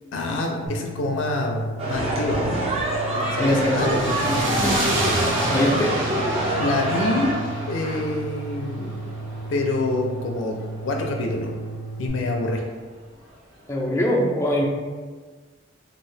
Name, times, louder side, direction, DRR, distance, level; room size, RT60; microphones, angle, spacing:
voice 1, 0.1-2.6 3.3-4.0 6.5-7.4 7.7-9.0 9.5-10.6 10.8-11.5 12.0-12.6, left 2 dB, 85° left, 1 dB, 0.4 m, -26 dB
sound 1, 0.7-12.1, right 2 dB, 55° right, 1.4 m, -34 dB
sound 2, 1.8-7.3, right 1 dB, 30° right, 0.6 m, -26 dB
sound 3, 2.9-11.1, right 1 dB, 80° right, 0.6 m, -29 dB
voice 2, 3.4-4.8 5.5-6.0 13.7-14.6, left 1 dB, 15° left, -2 dB, 0.4 m, -23 dB
2.8 x 2.5 x 3.2 m, 1.5 s
head